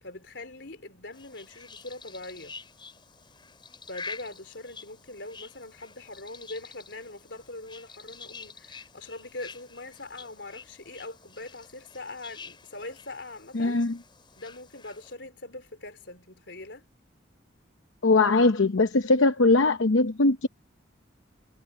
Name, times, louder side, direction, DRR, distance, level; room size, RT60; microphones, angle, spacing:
voice 1, 0.0-2.6 3.9-13.8 14.4-16.8, left 2 dB, 65° left, 4.3 m, -42 dB
sound 1, 1.1-15.1, left 5 dB, 25° left, 6.9 m, -47 dB
voice 2, 13.5-13.9 18.0-20.5, left 3 dB, 90° left, 0.9 m, -21 dB
head